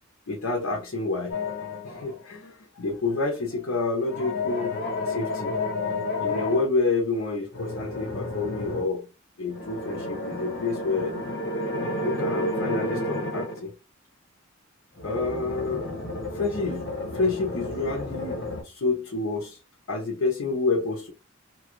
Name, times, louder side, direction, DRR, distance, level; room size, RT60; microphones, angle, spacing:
voice 1, 0.3-1.4 1.8-4.8 5.1-5.6 6.2-9.1 9.4-11.2 12.0-13.7 15.0-16.0 16.3-19.6 19.9-21.1, left 3 dB, 85° left, 0.8 m, -28 dB
sound 1, 1.3-2.2 4.0-6.6 7.5-8.9 9.5-13.6 15.0-18.6, left 2 dB, 60° left, 1.3 m, -31 dB
2.8 x 2.4 x 3.0 m
head